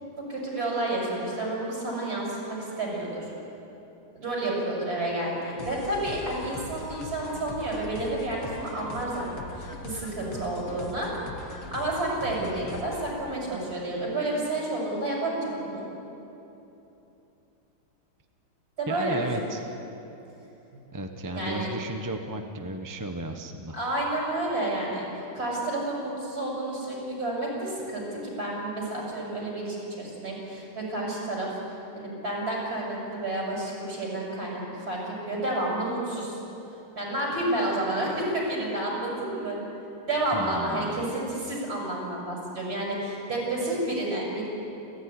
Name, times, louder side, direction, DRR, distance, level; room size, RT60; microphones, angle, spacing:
voice 1, 0.3-3.3 4.1-11.1 11.7-15.9 18.8-19.5 20.7-20.8 21.3-21.7 23.7-25.0 25.3-31.5 31.9-36.4 37.0-39.6 40.1-44.5, right 1 dB, 45° right, -3 dB, 7.7 m, -30 dB
sound 1, 5.6-13.1, left 3 dB, 90° left, 2.5 m, -41 dB
voice 2, 18.9-19.7 20.9-23.8 40.3-41.1, right 1 dB, 15° right, 5 dB, 0.8 m, -34 dB
30.0 x 14.5 x 9.9 m, 3.0 s
omnidirectional pair, 2.3 m